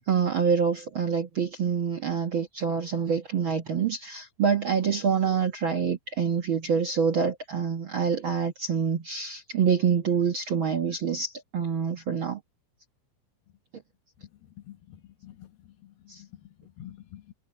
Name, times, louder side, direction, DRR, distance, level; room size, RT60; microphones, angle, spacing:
voice 1, 0.0-12.4 16.1-16.2, right 6 dB, 60° right, 1.3 m, -26 dB
voice 2, 14.4-15.5 15.8-17.3, left 12 dB, 80° left, 3.0 m, -48 dB
omnidirectional pair, 4.3 m